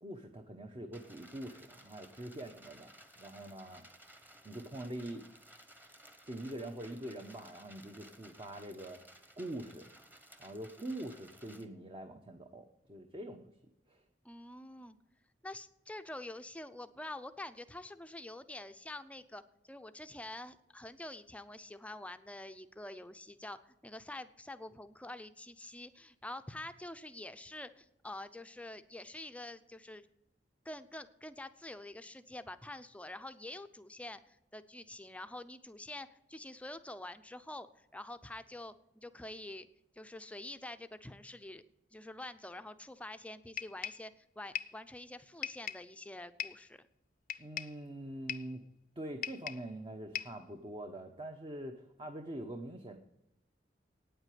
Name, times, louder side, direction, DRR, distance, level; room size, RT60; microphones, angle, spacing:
voice 1, 0.0-3.8 4.4-5.3 6.2-9.0 9.4-9.9 10.4-13.5 13.9-14.0 47.4-48.6 49.0-53.0, right 1 dB, 30° right, 4 dB, 0.9 m, -44 dB
sound 1, 0.9-11.6, right 1 dB, 10° right, 1.1 m, -58 dB
voice 2, 14.2-15.0 15.4-30.1 30.6-39.7 39.9-41.6 41.9-46.9, left 1 dB, 10° left, 10 dB, 0.6 m, -47 dB
sound 2, 43.6-44.1 44.5-44.8 45.4-45.9 46.4-46.7 47.3-47.8 48.3-48.6 49.2-49.7 50.1-50.4, left 10 dB, 50° left, 0.5 m, -40 dB
9.3 x 8.0 x 9.2 m, 0.90 s
head